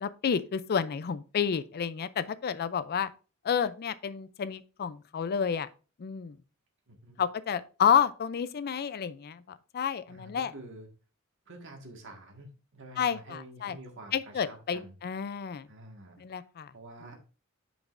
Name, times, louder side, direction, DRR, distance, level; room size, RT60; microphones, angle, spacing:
voice 1, 0.0-3.1 3.4-5.7 6.0-6.4 7.2-9.4 9.7-10.5 13.0-13.8 14.1-15.7 16.2-16.7, left 7 dB, 45° left, 0.4 m, -30 dB
voice 2, 6.9-7.2 10.1-10.9 11.4-14.9 15.7-16.2 16.7-17.2, right 1 dB, 60° right, 1.7 m, -48 dB
9.4 x 5.1 x 2.5 m
head